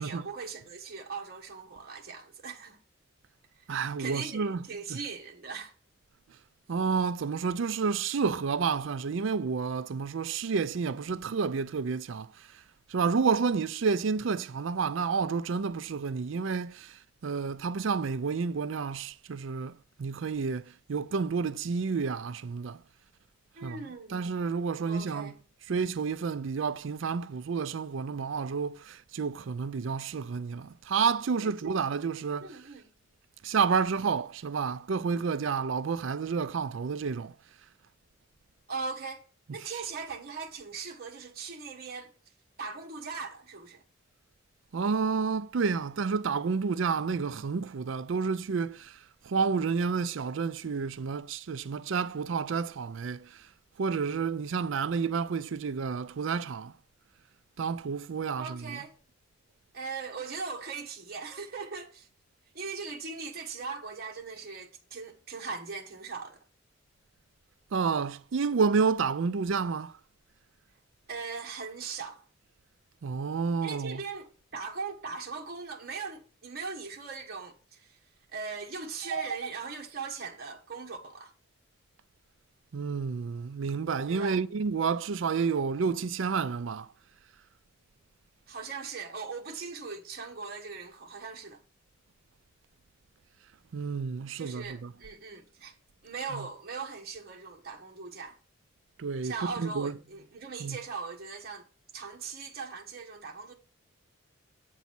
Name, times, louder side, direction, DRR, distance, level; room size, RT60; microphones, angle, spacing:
voice 1, 0.0-2.8 4.0-5.7 23.5-24.2 24.8-25.4 31.4-31.8 32.4-32.9 38.7-39.2 39.5-42.1 42.6-43.8 58.4-58.9 59.7-62.1 62.5-66.4 71.1-72.2 73.6-78.0 78.3-81.3 84.1-84.4 88.5-91.6 94.4-95.7 96.0-98.4 99.2-101.6 101.9-103.5, right 5 dB, 45° right, 1.2 m, -39 dB
voice 2, 3.7-4.6 4.9-5.0 6.7-12.3 12.9-17.0 17.2-22.8 23.6-23.8 24.1-25.3 25.7-32.6 33.4-37.3 44.7-49.0 49.3-53.4 53.8-56.7 57.6-58.8 67.7-69.9 73.0-74.0 79.1-79.2 82.7-86.9 93.7-94.9 96.3-96.5 99.0-99.3 99.6-99.9 100.6-100.8, right 5 dB, 65° right, 0.4 m, -30 dB
8.3 x 4.1 x 5.9 m
head